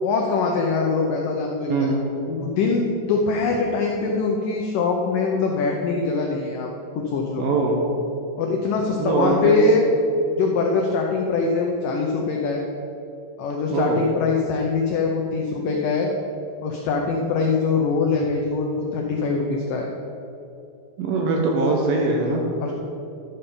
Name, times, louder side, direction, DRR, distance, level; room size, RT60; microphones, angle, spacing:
voice 1, 0.0-1.7 2.3-6.7 7.0-7.5 8.4-9.9 10.4-12.6 13.4-16.1 16.6-19.9 22.6-22.7, left 4 dB, 90° left, 1 dB, 1.9 m, -23 dB
voice 2, 1.7-2.0 7.4-7.8 9.0-9.6 13.7-14.0 21.0-22.4, right 3 dB, 70° right, 0 dB, 2.4 m, -22 dB
12.0 x 5.5 x 7.0 m, 2.8 s
omnidirectional pair, 5.0 m